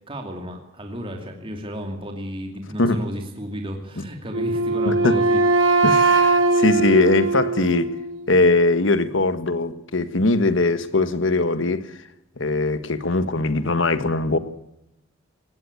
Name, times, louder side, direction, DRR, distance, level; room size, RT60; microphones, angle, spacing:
voice 1, 0.1-5.8, equal, 25° right, 2.7 m, -33 dB
Wind instrument woodwind instrument, 4.3-8.3, right 3 dB, 70° right, 2.7 m, -20 dB
voice 2, 4.8-5.2 5.8-7.9 8.3-11.9 12.4-14.4, left 2 dB, 70° left, 1.5 m, -21 dB
20.0 x 16.5 x 8.3 m
head